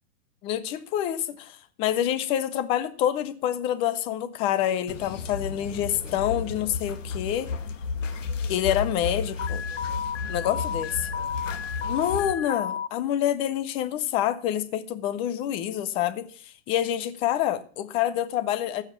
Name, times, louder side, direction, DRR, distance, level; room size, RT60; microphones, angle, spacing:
voice 1, 0.4-7.5 8.5-9.6 10.3-11.1 11.9-18.8, left 11 dB, 15° left, 13 dB, 0.5 m, -27 dB
sound 1, 4.9-12.3, left 4 dB, 90° left, 2.0 m, -33 dB
Alarm, 9.4-12.9, left 8 dB, 70° left, 0.9 m, -32 dB
15.0 x 5.7 x 7.2 m, 0.43 s
hypercardioid pair, 160°, 36 cm